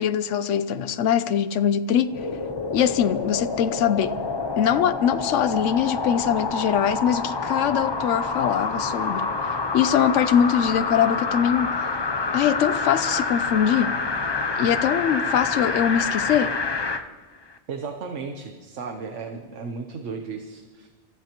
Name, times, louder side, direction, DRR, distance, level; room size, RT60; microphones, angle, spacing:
voice 1, 0.0-2.3 2.7-4.2 4.6-9.3 9.7-11.9 12.3-14.0 14.6-16.6, left 9 dB, 90° left, 1.0 m, -22 dB
sound 1, 2.1-17.1 17.5-17.6, left 4 dB, 30° left, 0.5 m, -27 dB
voice 2, 17.7-20.9, right 5 dB, 85° right, 1.3 m, -34 dB
27.5 x 14.5 x 3.0 m
omnidirectional pair, 1.2 m